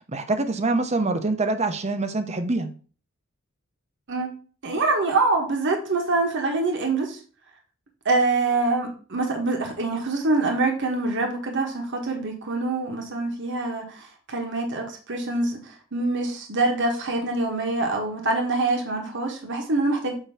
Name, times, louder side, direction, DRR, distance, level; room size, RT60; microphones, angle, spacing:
voice 1, 0.1-2.7, right 2 dB, 30° right, 8 dB, 0.8 m, -25 dB
voice 2, 4.6-7.2 8.0-20.1, right 3 dB, 55° right, 2 dB, 1.4 m, -25 dB
8.0 x 2.9 x 5.7 m, 0.40 s
head